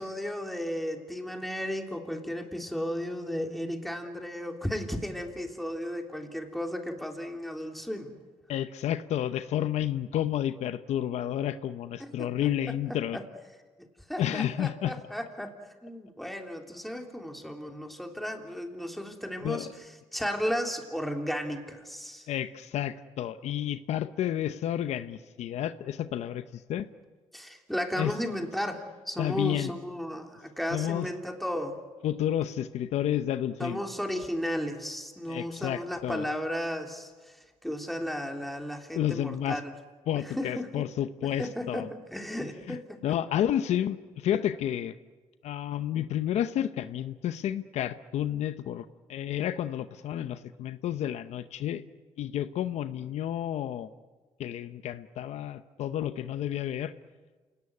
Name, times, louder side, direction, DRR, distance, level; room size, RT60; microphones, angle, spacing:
voice 1, 0.0-8.2 12.0-12.3 13.1-13.2 13.8-15.5 15.8-19.9 20.1-22.3 27.3-31.8 33.6-37.4 37.6-39.7 40.1-40.9 41.2-41.9 42.1-43.2, equal, ahead, 3 dB, 3.3 m, -34 dB
voice 2, 8.5-13.2 14.2-14.9 19.4-19.7 22.3-26.9 28.0-28.1 29.2-29.7 30.7-31.1 32.0-33.8 35.3-36.2 38.9-39.6 40.1-41.9 42.7-45.0 45.4-51.8 52.2-53.9 54.4-56.9, left 11 dB, 75° left, 12 dB, 0.8 m, -31 dB
28.0 x 18.5 x 9.6 m, 1.4 s
cardioid pair, 95°, 12 cm